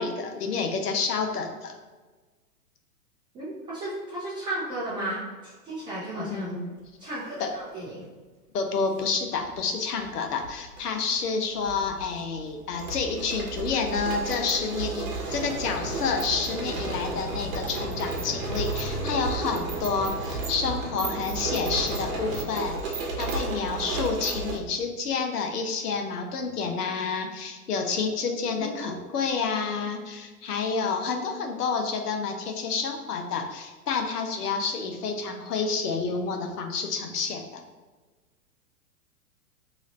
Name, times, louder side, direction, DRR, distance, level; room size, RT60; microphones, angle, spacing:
voice 1, 0.0-1.7 6.2-6.7 7.4-7.5 8.5-37.6, left 5 dB, 80° left, 4 dB, 0.8 m, -29 dB
voice 2, 3.3-6.5 7.0-8.0 20.7-20.9 21.2-21.4 28.6-29.0, right 1 dB, 10° right, -9 dB, 0.4 m, -35 dB
sound 1, 8.8-9.0 10.1-10.8 11.1-11.2 11.6-24.6, right 3 dB, 60° right, 0.9 m, -33 dB
sound 2, 15.2-22.5, left 2 dB, 55° left, 0.9 m, -38 dB
3.0 x 2.4 x 4.1 m, 1.3 s
hypercardioid pair, 120°, 46 cm